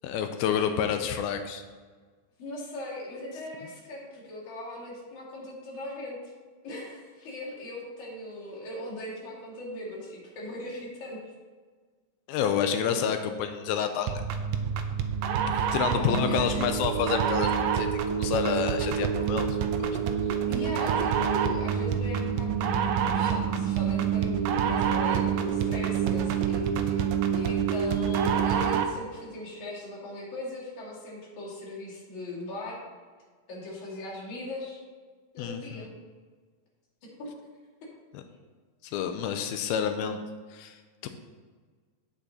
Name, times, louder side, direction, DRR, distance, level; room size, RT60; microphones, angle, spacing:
voice 1, 0.0-1.6 12.3-14.2 15.7-19.9 35.4-35.6 38.1-38.2 38.9-40.2 40.5-40.7 41.0-41.1, left 8 dB, 85° left, 7 dB, 2.4 m, -29 dB
voice 2, 2.4-6.3 6.6-11.2 15.9-16.6 20.5-27.0 27.3-32.8 33.5-34.8 35.3-35.9 37.0-37.3, left 1 dB, 55° left, -6 dB, 3.6 m, -39 dB
sound 1, 14.1-29.0, right 7 dB, 85° right, 1.8 m, -27 dB
8.5 x 6.7 x 4.0 m, 1.5 s
omnidirectional pair, 4.4 m